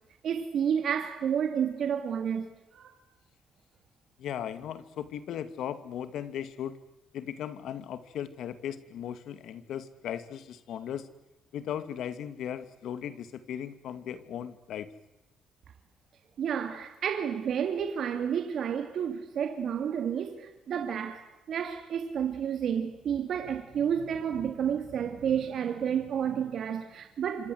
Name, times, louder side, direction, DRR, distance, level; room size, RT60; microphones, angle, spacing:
voice 1, 0.2-2.9 16.4-27.5, right 8 dB, 65° right, 2.6 m, -30 dB
voice 2, 4.2-6.8 7.1-11.1 11.5-14.9, left 9 dB, 75° left, 2.3 m, -37 dB
27.5 x 26.0 x 8.0 m
cardioid pair, 90°, 0 cm